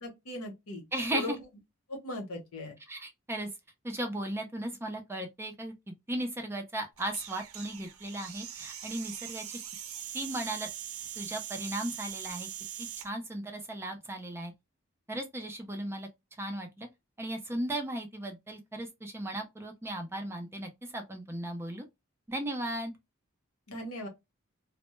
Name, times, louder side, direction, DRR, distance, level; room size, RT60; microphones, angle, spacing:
voice 1, 0.0-0.8 1.1-1.3 1.9-2.7 23.7-24.1, left 1 dB, 90° left, 0.9 m, -38 dB
voice 2, 0.9-1.4 2.9-3.5 3.8-9.6 10.1-10.7 11.2-12.5 12.8-14.5 15.1-16.1 16.4-16.9 17.2-21.9 22.3-22.9, right 1 dB, 10° right, 0.4 m, -36 dB
sound 1, 7.0-13.1, right 10 dB, 85° right, 0.5 m, -42 dB
2.1 x 2.0 x 3.0 m
head